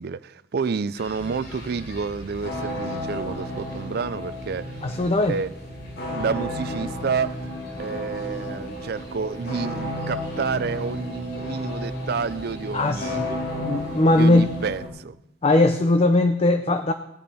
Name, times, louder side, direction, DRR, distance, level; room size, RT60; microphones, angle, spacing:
voice 1, 0.0-4.8 5.3-5.5 6.1-7.4 7.8-13.5 14.2-15.2, right 5 dB, 60° right, 0.4 m, -29 dB
sound 1, 1.0-14.8, equal, 90° left, 4.0 m, -43 dB
sound 2, 1.2-14.9, left 1 dB, 60° left, 2.5 m, -33 dB
voice 2, 4.8-5.3 12.7-13.3 13.6-14.5 15.4-16.9, left 2 dB, 35° left, 0.6 m, -19 dB
19.5 x 8.6 x 4.2 m
head